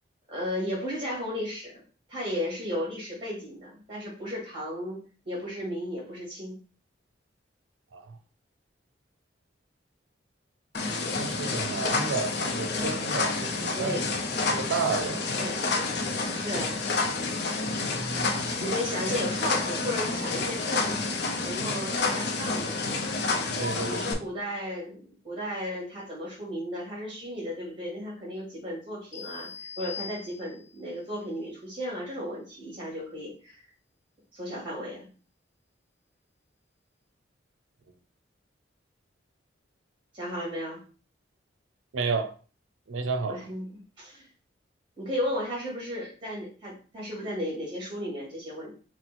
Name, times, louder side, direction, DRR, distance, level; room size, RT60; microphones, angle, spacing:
voice 1, 0.3-1.8 2.1-6.6 13.7-14.1 15.4-15.7 16.3-16.7 18.6-21.0 21.4-22.9 23.8-33.6 34.3-35.1 40.1-40.8 43.3-43.6 44.0-44.3 45.0-48.7, equal, 25° right, 2.0 m, -34 dB
sound 1, 10.7-24.1, left 3 dB, 55° left, 0.6 m, -29 dB
voice 2, 11.2-14.0 14.5-15.3 17.7-18.6 23.6-24.0 41.9-42.3 42.9-43.4, right 4 dB, 90° right, 0.5 m, -31 dB
sound 2, 29.1-30.8, left 6 dB, 75° left, 1.0 m, -41 dB
4.3 x 2.1 x 4.2 m
head